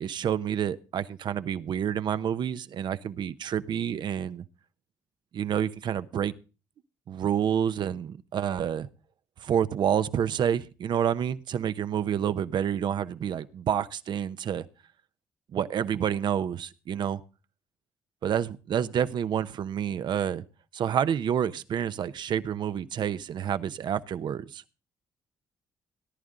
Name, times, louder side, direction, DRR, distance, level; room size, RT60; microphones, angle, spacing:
voice 1, 0.0-4.4 5.3-6.3 7.1-8.9 9.4-14.7 15.5-17.2 18.2-20.4 20.7-24.6, right 9 dB, 60° right, 0.8 m, -28 dB
18.0 x 11.0 x 3.8 m
hypercardioid pair, 50°, 9 cm